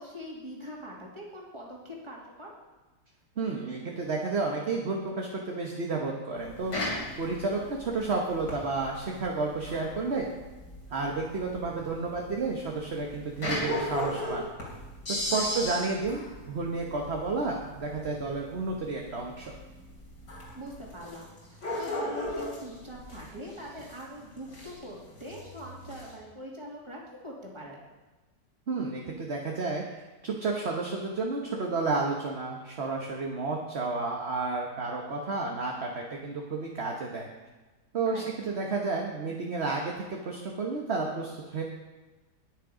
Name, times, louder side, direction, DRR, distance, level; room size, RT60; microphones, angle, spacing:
voice 1, 0.0-2.5 15.3-15.5 20.5-27.8 38.0-38.3, equal, 15° right, -3 dB, 2.7 m, -42 dB
voice 2, 3.4-10.3 10.9-14.5 15.1-19.5 28.7-37.3 37.9-41.6, right 3 dB, 40° right, 0 dB, 1.4 m, -31 dB
sound 1, 6.4-26.1, left 1 dB, 70° left, 3.9 m, -37 dB
20.0 x 6.7 x 5.0 m, 1.2 s
omnidirectional pair, 1.8 m